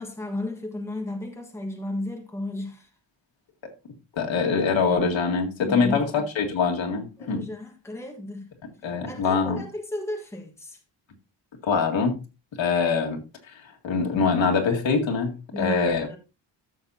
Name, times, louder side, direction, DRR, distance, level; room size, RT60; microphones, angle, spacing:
voice 1, 0.0-2.9 5.7-6.1 7.2-8.5 9.0-10.8 15.5-16.2, left 1 dB, 5° left, 1.4 m, -34 dB
voice 2, 4.1-7.5 8.6-9.6 11.6-12.2 12.6-13.2 13.5-16.1, left 5 dB, 85° left, 2.1 m, -24 dB
13.5 x 6.8 x 2.8 m
wide cardioid pair, 175°, 45 cm